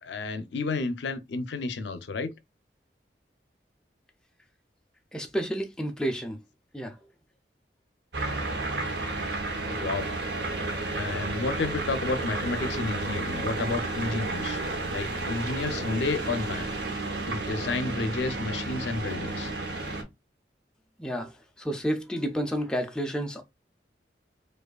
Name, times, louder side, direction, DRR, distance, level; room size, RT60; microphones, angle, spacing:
voice 1, 0.0-2.3 9.6-10.1 10.9-14.6 14.9-16.7 17.2-19.5, left 3 dB, 80° left, 0.5 m, -31 dB
voice 2, 5.1-6.4 6.7-7.0 21.0-23.4, equal, 5° left, 0.3 m, -30 dB
sound 1, 8.1-20.0, right 2 dB, 75° right, 0.8 m, -32 dB
4.7 x 2.4 x 2.2 m
head